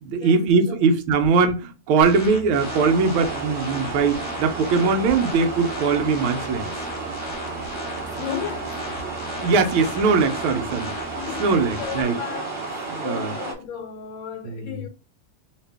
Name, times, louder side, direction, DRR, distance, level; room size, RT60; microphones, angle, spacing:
voice 1, 0.0-6.7 9.3-10.9 11.4-12.1 12.9-13.3 14.5-14.8, right 4 dB, 80° right, 1.5 m, -21 dB
sound 1, 2.0-12.0, left 2 dB, 60° left, 0.8 m, -37 dB
sound 2, 2.6-13.5, right 3 dB, 30° right, 1.0 m, -32 dB
voice 2, 8.1-8.8 11.1-14.9, left 9 dB, 75° left, 1.4 m, -35 dB
3.2 x 2.9 x 3.3 m
omnidirectional pair, 2.3 m